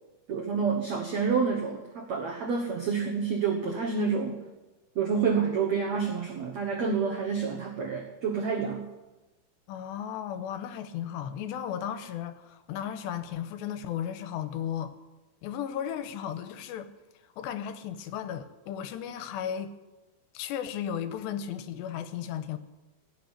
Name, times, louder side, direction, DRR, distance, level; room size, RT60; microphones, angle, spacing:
voice 1, 0.3-4.4 4.9-8.9, right 5 dB, 80° right, 1 dB, 1.5 m, -28 dB
voice 2, 9.7-14.9 15.4-16.9 17.4-19.7 20.3-22.6, left 9 dB, 85° left, 10 dB, 2.9 m, -35 dB
17.5 x 6.5 x 9.8 m, 1.1 s
omnidirectional pair, 5.1 m